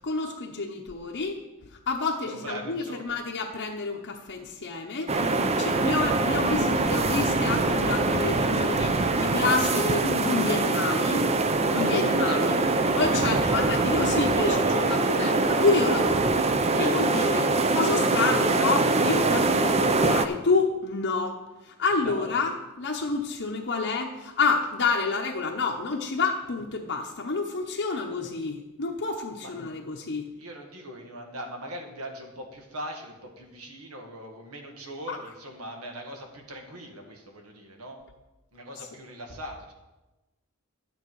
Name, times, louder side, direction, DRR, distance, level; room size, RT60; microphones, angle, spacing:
voice 1, 0.0-1.4 1.9-11.2 11.7-12.6 13.0-14.6 14.9-16.4 16.8-21.4 21.7-22.5 22.8-30.2 35.1-35.2, left 4 dB, 55° left, 1 dB, 0.9 m, -28 dB
voice 2, 2.2-3.2 11.5-15.0 16.8-17.7 22.0-22.3 29.4-29.5 30.4-38.0 38.5-39.7, right 1 dB, 80° right, 2 dB, 1.8 m, -40 dB
sound 1, 5.1-20.3, right 3 dB, 30° right, 0.5 m, -24 dB
10.5 x 8.8 x 4.7 m, 1.1 s
head